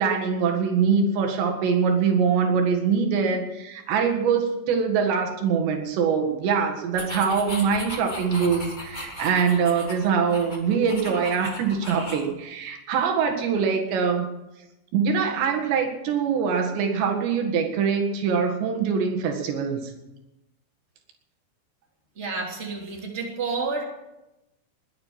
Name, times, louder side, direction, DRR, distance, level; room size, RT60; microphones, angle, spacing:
voice 1, 0.0-14.3 14.9-19.9, right 6 dB, 90° right, 3 dB, 4.1 m, -23 dB
sound 1, 6.9-12.3, left 1 dB, 15° left, 2.2 m, -37 dB
voice 2, 22.1-23.8, right 4 dB, 20° right, 0 dB, 2.7 m, -30 dB
21.0 x 9.5 x 7.3 m, 0.95 s
omnidirectional pair, 4.9 m